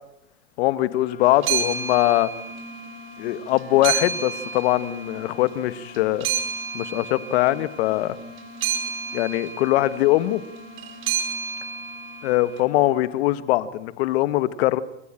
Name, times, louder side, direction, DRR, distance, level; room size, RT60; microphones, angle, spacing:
voice 1, 0.6-2.3 3.2-6.3 6.7-8.2 9.1-10.4 12.2-14.8, left 16 dB, 65° left, 1.4 m, -22 dB
sound 1, 0.9-13.6, left 8 dB, 20° left, 2.5 m, -45 dB
sound 2, 1.2-3.0 3.3-5.6 5.9-12.4, right 7 dB, 35° right, 1.8 m, -30 dB
28.5 x 14.0 x 8.9 m
supercardioid pair, 135°, 35 cm